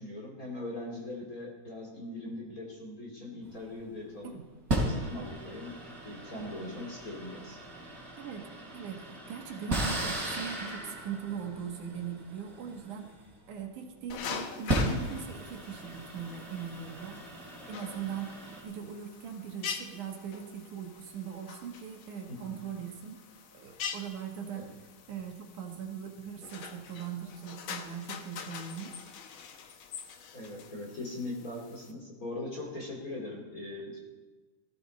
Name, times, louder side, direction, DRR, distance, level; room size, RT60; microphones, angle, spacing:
voice 1, 0.0-4.3 4.8-5.8 6.0-7.6 22.3-22.6 24.5-24.7 30.3-34.0, left 2 dB, 30° left, -1 dB, 2.9 m, -40 dB
sound 1, 3.5-3.7 4.7-13.7 14.5-18.6, right 1 dB, 25° right, 3.8 m, -36 dB
voice 2, 8.2-8.5 8.7-13.1 13.5-17.3 17.7-18.4 18.6-23.2 23.5-24.7 25.1-29.0, right 7 dB, 75° right, 3 dB, 2.9 m, -40 dB
sound 2, 14.1-31.9, left 7 dB, 80° left, 1.1 m, -44 dB
18.0 x 14.5 x 4.2 m, 1.2 s
omnidirectional pair, 3.6 m